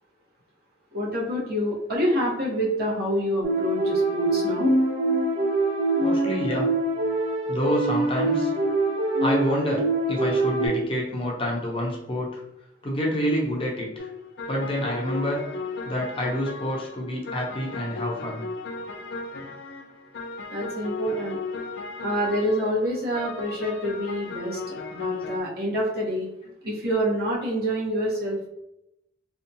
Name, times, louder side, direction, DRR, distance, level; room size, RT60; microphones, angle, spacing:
voice 1, 0.9-4.7 20.5-21.4 22.0-26.2 26.6-28.5, equal, 60° right, -4 dB, 0.9 m, -27 dB
sound 1, 3.4-10.7, right 2 dB, 80° right, 1.2 m, -24 dB
voice 2, 5.3-5.7 6.0-6.7 7.5-8.5 9.2-12.4 12.8-14.1 14.5-15.4 15.8-18.4, equal, 30° left, -2 dB, 0.6 m, -28 dB
sound 2, 14.0-25.4, left 3 dB, 85° left, 0.4 m, -36 dB
2.6 x 2.2 x 2.6 m, 0.85 s
head